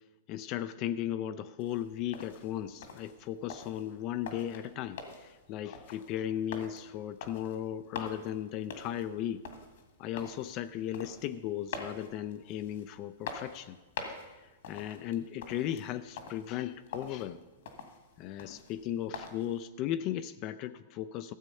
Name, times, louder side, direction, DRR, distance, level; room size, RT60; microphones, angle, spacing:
voice 1, 0.3-9.5 10.0-13.8 14.7-17.4 18.2-21.3, left 11 dB, 40° left, 11 dB, 0.4 m, -36 dB
sound 1, 1.6-19.6, left 5 dB, 70° left, 1.9 m, -46 dB
14.5 x 7.4 x 5.5 m, 1.1 s
hypercardioid pair, 140°, 0 cm